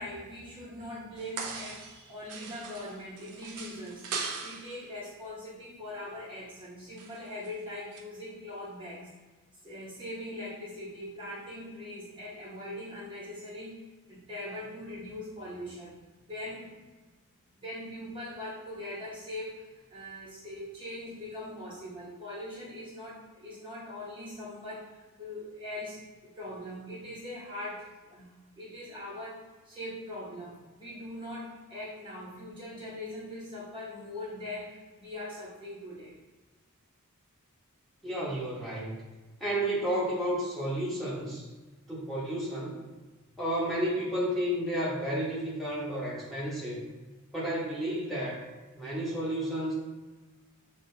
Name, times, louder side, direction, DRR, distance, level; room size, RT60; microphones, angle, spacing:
voice 1, 0.0-4.0 4.4-9.1 9.6-15.9 16.3-16.8 17.6-36.2, left 1 dB, 25° right, -8 dB, 0.9 m, -41 dB
sound 1, 1.2-2.0 2.3-4.8 7.0-7.5 7.9-8.0, right 4 dB, 80° right, 0.6 m, -39 dB
voice 2, 38.0-39.0 39.4-41.4 41.9-42.8 43.4-46.8 47.3-48.4 48.7-49.7, equal, ahead, -8 dB, 1.1 m, -31 dB
6.2 x 2.4 x 2.7 m, 1.3 s
head